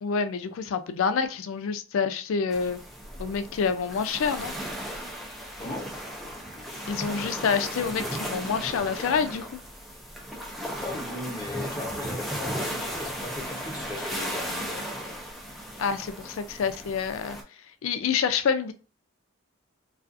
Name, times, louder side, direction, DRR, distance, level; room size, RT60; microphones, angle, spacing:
voice 1, 0.0-2.8 3.2-4.5 6.9-9.5 15.8-17.4 17.8-18.7, left 6 dB, 75° left, 10 dB, 0.3 m, -27 dB
sound 1, 2.5-17.4, equal, ahead, 0.4 m, -36 dB
voice 2, 10.8-14.8, left 2 dB, 20° left, -1 dB, 0.7 m, -37 dB
2.4 x 2.3 x 2.4 m, 0.36 s
head